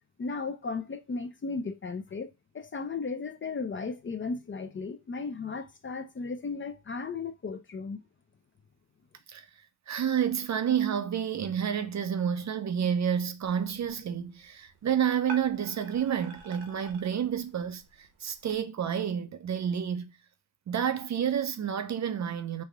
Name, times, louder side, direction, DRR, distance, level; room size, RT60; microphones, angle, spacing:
voice 1, 0.2-8.0, left 4 dB, 30° left, 0.5 m, -35 dB
voice 2, 9.9-20.1 20.7-22.6, right 8 dB, 45° right, 0.5 m, -29 dB
sound 1, 13.4-18.6, right 3 dB, 70° right, 0.9 m, -49 dB
3.4 x 2.2 x 3.4 m
cardioid pair, 75°, 41 cm